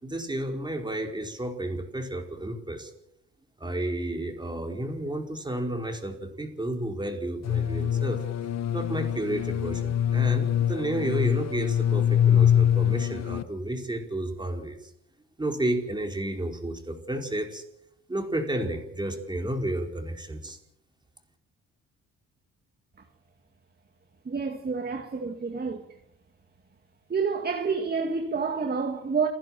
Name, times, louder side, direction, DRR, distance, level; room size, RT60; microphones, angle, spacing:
voice 1, 0.0-2.9 3.6-8.2 8.7-14.9 15.4-17.6 18.1-20.6, right 1 dB, 15° right, 4.8 m, -31 dB
sound 1, 7.4-13.4, left 9 dB, 60° left, 1.2 m, -24 dB
voice 2, 24.3-25.8 27.1-29.3, right 5 dB, 30° right, 2.2 m, -28 dB
30.0 x 11.0 x 7.7 m
cardioid pair, 90°, 30 cm